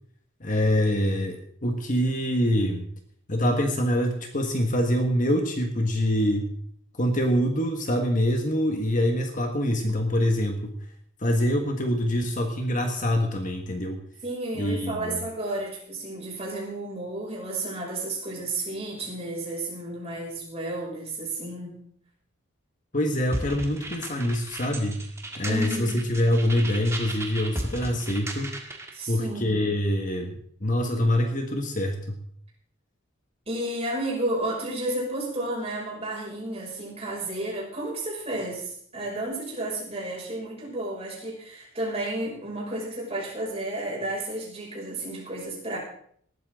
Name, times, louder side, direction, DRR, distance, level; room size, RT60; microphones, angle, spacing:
voice 1, 0.4-2.9 3.3-6.5 6.9-10.7 11.2-14.0 14.5-15.2 22.9-25.0 25.4-28.5 29.1-32.2, equal, 35° left, 4 dB, 1.5 m, -25 dB
voice 2, 14.2-21.8 25.4-26.0 28.9-29.7 33.5-45.8, right 1 dB, 30° right, -4 dB, 6.0 m, -32 dB
sound 1, 23.3-29.0, right 1 dB, 15° right, 1.8 m, -36 dB
19.5 x 13.0 x 3.8 m, 0.62 s
head